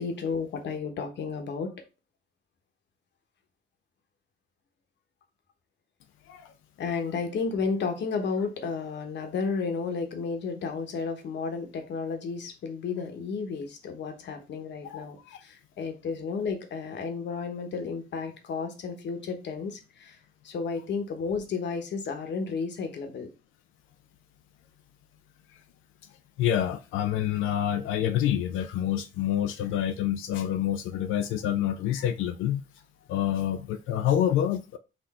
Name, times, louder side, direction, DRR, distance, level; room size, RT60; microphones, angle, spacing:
voice 1, 0.0-1.8 6.8-20.2 20.4-23.3, left 5 dB, 65° left, 1.1 m, -32 dB
voice 2, 14.8-15.4 26.4-32.6 33.1-34.8, left 11 dB, 85° left, 0.4 m, -27 dB
4.3 x 2.6 x 4.1 m
cardioid pair, 90°, 20 cm